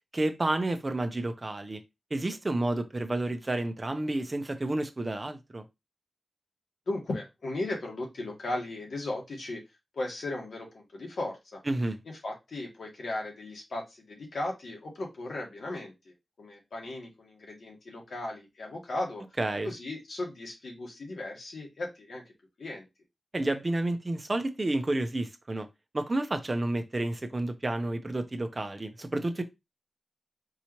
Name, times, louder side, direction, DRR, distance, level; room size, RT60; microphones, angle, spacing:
voice 1, 0.1-1.8 2.1-5.6 11.7-12.0 19.4-19.7 23.3-25.7 25.9-29.4, right 2 dB, 35° right, 0.7 m, -30 dB
voice 2, 6.9-9.6 9.9-11.6 12.0-19.2 19.6-22.3 22.6-22.9, left 2 dB, 85° left, 1.6 m, -36 dB
4.7 x 2.8 x 3.1 m
wide cardioid pair, 75°, 0 cm